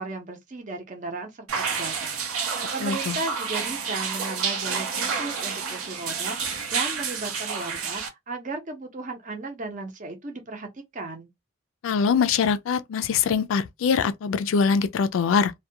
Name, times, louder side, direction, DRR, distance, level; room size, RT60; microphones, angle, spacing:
voice 1, 0.0-2.3 2.7-10.7 10.9-11.3, right 3 dB, 35° right, 0.6 m, -35 dB
sound 1, 1.5-8.1, right 6 dB, 90° right, 0.7 m, -29 dB
voice 2, 2.8-3.2 11.8-15.5, left 6 dB, 70° left, 0.3 m, -23 dB
2.3 x 2.2 x 2.7 m
head